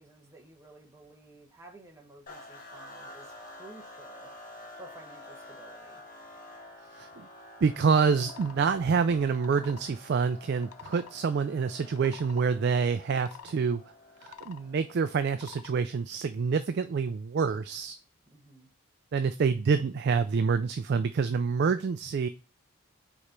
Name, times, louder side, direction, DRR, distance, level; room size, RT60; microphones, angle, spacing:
voice 1, 0.0-4.3 4.8-6.0 18.3-18.7, right 2 dB, 15° right, 0 dB, 1.1 m, -53 dB
sound 1, 2.3-15.6, left 1 dB, 40° left, 1.2 m, -49 dB
voice 2, 7.0-7.3 7.6-13.8 14.2-18.0 19.1-22.3, right 5 dB, 50° right, 10 dB, 0.3 m, -27 dB
sound 2, 8.2-8.6 9.2-9.9 10.5-11.1 11.8-12.4 13.1-13.5 14.1-14.7 15.2-15.7, left 8 dB, 90° left, 0.5 m, -48 dB
4.8 x 4.2 x 5.1 m, 0.32 s
head